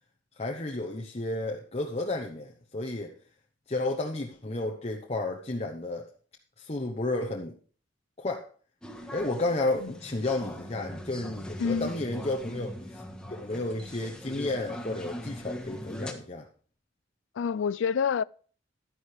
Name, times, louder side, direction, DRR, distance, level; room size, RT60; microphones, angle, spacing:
voice 1, 0.4-3.1 3.7-6.1 6.6-7.6 8.2-8.5 9.1-13.0 13.4-16.5, left 2 dB, 35° left, 1.0 m, -32 dB
sound 1, 8.8-16.1, equal, 5° left, 1.5 m, -41 dB
voice 2, 11.6-11.9 17.4-18.2, left 6 dB, 75° left, 0.4 m, -27 dB
11.5 x 10.5 x 3.4 m
head